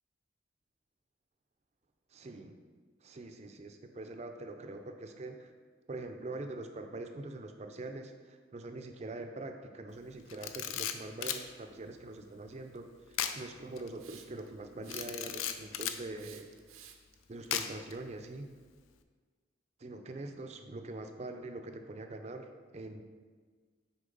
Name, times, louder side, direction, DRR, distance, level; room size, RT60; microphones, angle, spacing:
voice 1, 2.1-2.6 3.0-5.5 5.9-16.5 17.3-18.5 19.8-23.0, right 2 dB, 35° right, 6 dB, 0.4 m, -44 dB
Camera, 10.3-11.5 13.1-13.4 13.8-13.9 14.9-16.0 17.5-17.9, left 9 dB, 90° left, 0.4 m, -35 dB
Hiss, 14.0-14.5 14.8-15.5 16.2-17.1, right 9 dB, 85° right, 0.6 m, -53 dB
6.4 x 4.6 x 3.8 m, 1.5 s
head